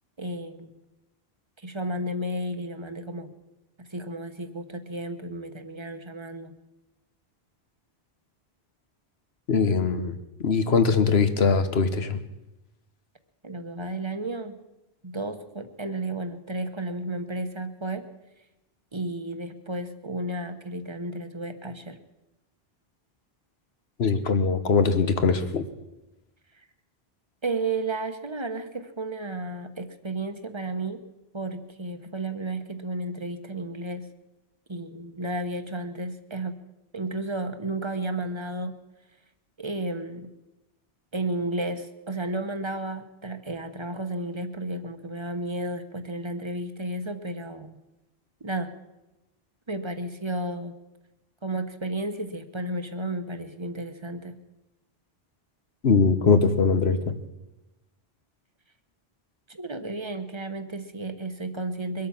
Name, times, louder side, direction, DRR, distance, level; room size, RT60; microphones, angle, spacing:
voice 1, 0.2-0.8 1.6-3.3 3.8-6.6 13.4-14.6 15.0-18.1 18.9-22.0 26.5-26.6 27.4-31.0 31.3-34.1 34.7-36.6 36.9-38.8 39.6-40.3 41.1-47.8 48.4-48.8 49.7-50.8 51.4-54.4 59.5-62.1, right 2 dB, 30° right, 8 dB, 1.1 m, -33 dB
voice 2, 9.5-12.2 24.0-25.7 55.8-57.1, left 5 dB, 85° left, 9 dB, 1.4 m, -22 dB
22.5 x 8.6 x 7.2 m, 1.0 s
omnidirectional pair, 1.0 m